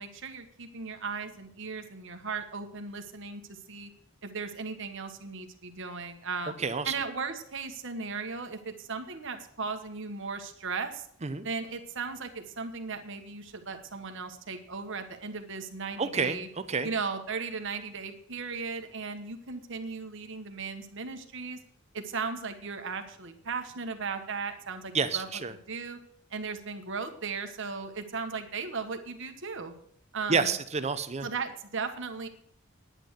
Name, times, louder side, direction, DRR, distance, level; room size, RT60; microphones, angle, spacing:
voice 1, 0.0-3.4 3.7-3.9 4.2-6.5 6.8-11.0 11.4-16.5 16.8-21.6 21.9-25.3 25.7-26.0 26.3-29.7 30.1-30.5 31.2-32.3, right 4 dB, 65° right, 6 dB, 1.4 m, -36 dB
voice 2, 6.6-6.9 11.2-11.4 16.0-16.9 24.9-25.5 30.3-31.3, right 5 dB, 35° right, 11 dB, 0.7 m, -29 dB
10.0 x 8.9 x 6.4 m, 0.68 s
head